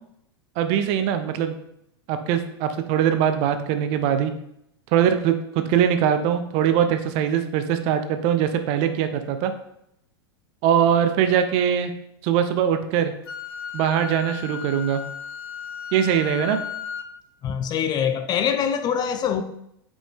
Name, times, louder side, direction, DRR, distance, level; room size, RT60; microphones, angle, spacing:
voice 1, 0.6-1.6 2.1-4.3 4.9-5.3 5.7-9.5 10.6-11.9 12.2-13.1 13.7-15.0 15.9-16.6, right 9 dB, 50° right, 0.7 m, -21 dB
Wind instrument woodwind instrument, 13.3-17.1, left 8 dB, 70° left, 0.6 m, -35 dB
voice 2, 17.4-19.4, left 8 dB, 30° left, 0.6 m, -24 dB
5.3 x 5.0 x 3.5 m
hypercardioid pair, 95°, 13 cm